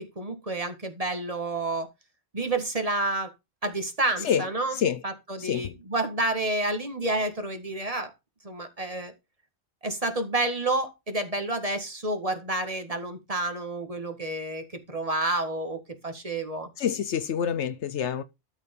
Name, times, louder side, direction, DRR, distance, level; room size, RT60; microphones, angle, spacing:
voice 1, 0.0-1.9 2.3-3.3 3.6-8.1 8.4-9.1 9.8-16.7, right 2 dB, 30° right, 1.8 m, -29 dB
voice 2, 4.7-5.0 5.4-5.8 16.8-18.2, left 8 dB, 80° left, 1.1 m, -27 dB
12.5 x 4.6 x 5.3 m
omnidirectional pair, 1.2 m